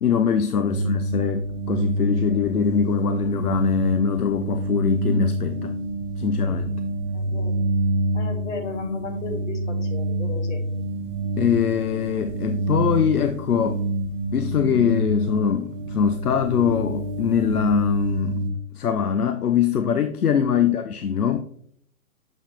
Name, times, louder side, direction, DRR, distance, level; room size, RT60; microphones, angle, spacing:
voice 1, 0.0-1.4 1.7-5.8 6.2-6.7 11.4-13.8 14.3-18.5 18.7-21.4, left 7 dB, 80° left, 0.6 m, -22 dB
sound 1, 0.7-18.5, right 1 dB, 35° right, 1.1 m, -27 dB
voice 2, 7.1-7.5 8.1-10.6 20.5-20.7, left 3 dB, 55° left, 1.3 m, -34 dB
7.1 x 5.6 x 2.9 m
figure-of-eight pair, 125°, 45 cm